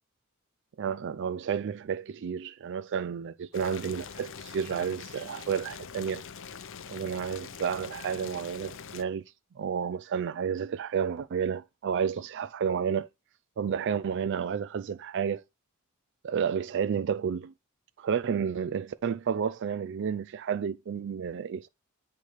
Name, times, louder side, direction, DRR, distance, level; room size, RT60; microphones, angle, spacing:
voice 1, 0.8-6.2 6.9-9.2 9.6-13.1 13.6-15.4 16.2-17.5 18.0-21.7, right 7 dB, 55° right, 0.4 m, -31 dB
Boiling, 3.5-9.0, left 7 dB, 60° left, 0.6 m, -44 dB
8.3 x 3.3 x 4.5 m
head